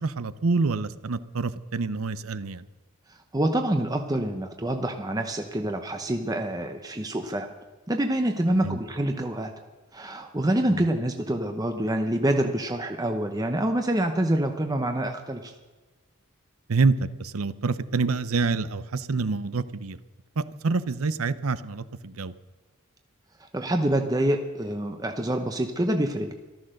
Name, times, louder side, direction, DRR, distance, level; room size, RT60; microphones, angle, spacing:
voice 1, 0.0-2.7 8.6-8.8 10.7-10.8 16.7-20.0 20.4-22.3, right 4 dB, 70° right, 14 dB, 0.7 m, -27 dB
voice 2, 3.3-7.5 7.9-9.5 9.9-15.5 23.4-26.3, right 1 dB, 15° right, 5 dB, 0.8 m, -26 dB
14.0 x 13.0 x 6.5 m, 1.2 s
head